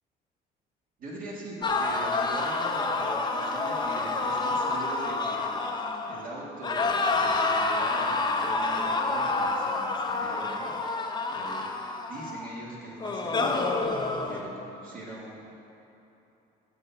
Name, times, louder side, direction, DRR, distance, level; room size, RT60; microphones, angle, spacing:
voice 1, 1.0-11.7 12.1-15.5, right 1 dB, 55° right, -6 dB, 1.8 m, -41 dB
sound 1, 1.6-6.3 6.6-12.5 13.0-14.4, left 3 dB, 25° left, 0.6 m, -28 dB
6.9 x 6.7 x 5.7 m, 2.9 s
cardioid pair, 110°, 17 cm